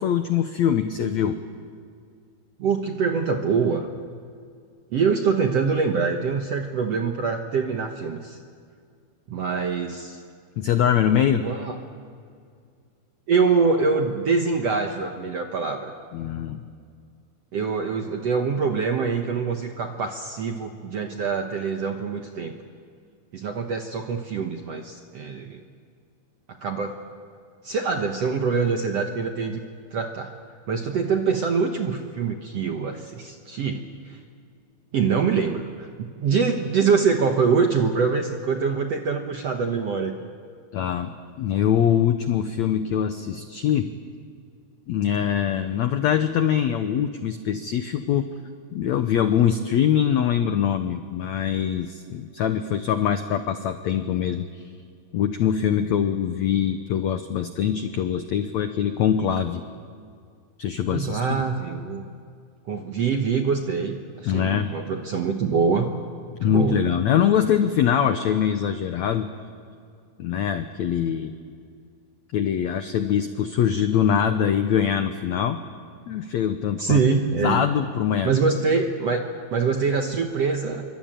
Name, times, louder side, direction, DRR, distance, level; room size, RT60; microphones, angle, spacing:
voice 1, 0.0-1.4 10.6-11.5 16.1-16.6 40.7-43.9 44.9-48.3 48.7-54.7 55.1-59.6 60.6-61.4 64.2-64.7 66.4-69.3 70.2-71.3 72.3-75.6 76.1-77.0 77.3-78.3, left 9 dB, 80° left, 8 dB, 1.6 m, -23 dB
voice 2, 2.6-3.9 4.9-8.4 9.3-10.2 11.4-11.7 13.3-15.9 17.5-22.5 23.3-25.6 26.5-27.0 27.6-29.6 29.9-30.3 30.7-34.2 34.9-40.2 60.9-62.0 62.7-65.9 66.4-66.8 76.8-77.6 78.2-80.8, right 5 dB, 65° right, 4 dB, 1.6 m, -24 dB
27.0 x 24.0 x 9.0 m, 2.2 s
omnidirectional pair, 4.5 m